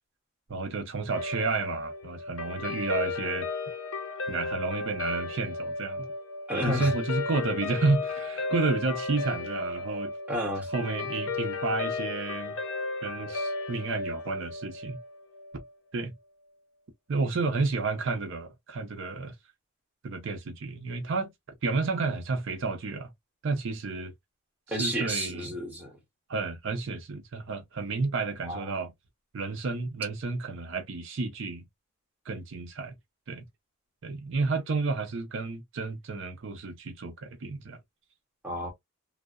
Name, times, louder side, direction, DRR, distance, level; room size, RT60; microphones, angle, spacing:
voice 1, 0.5-3.5 4.3-6.1 6.5-10.1 10.7-12.6 13.0-15.0 15.9-16.1 17.1-19.3 20.0-21.3 21.6-23.1 23.4-24.1 24.7-25.5 26.3-28.9 29.3-31.7 32.3-32.9 33.3-33.4 34.0-37.8, right 3 dB, 60° right, 0.5 m, -31 dB
Guitar, 1.1-15.7, left 3 dB, 75° left, 0.5 m, -34 dB
voice 2, 6.5-6.9 10.3-10.7 24.7-25.9 28.4-28.8 38.4-38.7, equal, 5° right, 0.9 m, -31 dB
2.7 x 2.0 x 2.3 m
head